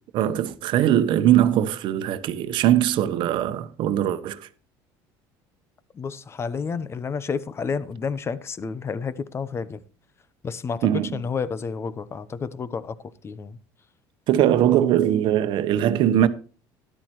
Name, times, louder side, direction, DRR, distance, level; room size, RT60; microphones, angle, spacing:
voice 1, 0.1-4.5 10.8-11.2 14.3-16.3, right 11 dB, 60° right, 1.0 m, -21 dB
voice 2, 5.9-9.8 10.4-12.9 13.2-13.6, left 5 dB, 30° left, 0.9 m, -30 dB
13.0 x 11.5 x 3.1 m
supercardioid pair, 110°, 9 cm